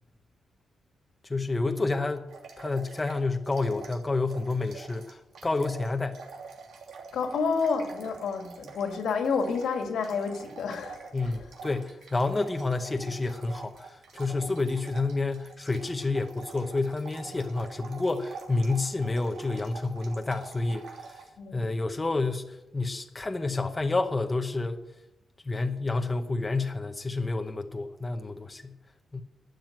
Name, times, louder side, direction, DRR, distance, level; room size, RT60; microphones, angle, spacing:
voice 1, 1.2-2.3 2.6-6.2 11.1-21.2 21.5-24.8 25.4-28.8 29.1-29.2, left 3 dB, 15° left, 0.8 m, -29 dB
sound 1, 2.3-4.0 4.3-21.3, right 5 dB, 80° right, 2.9 m, -46 dB
voice 2, 7.1-11.3 21.4-21.7, left 5 dB, 80° left, 2.1 m, -29 dB
12.0 x 7.9 x 9.1 m
wide cardioid pair, 165°, 0 cm